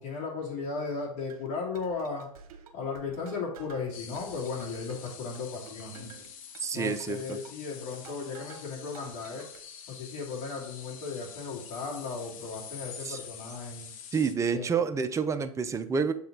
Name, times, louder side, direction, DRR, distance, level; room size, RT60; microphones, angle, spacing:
voice 1, 0.0-2.3 2.7-6.2 6.7-9.5 9.9-13.9 14.5-14.7, left 4 dB, 40° left, -2 dB, 2.6 m, -36 dB
sound 1, 1.3-8.7 8.9-9.6, right 6 dB, 65° right, 1.1 m, -52 dB
sound 2, 3.9-14.3, left 8 dB, 60° left, 1.0 m, -46 dB
voice 2, 6.6-7.4 13.0-13.2 14.1-16.1, right 6 dB, 15° right, 9 dB, 0.5 m, -28 dB
7.6 x 4.0 x 3.8 m, 0.63 s
hypercardioid pair, 100°, 19 cm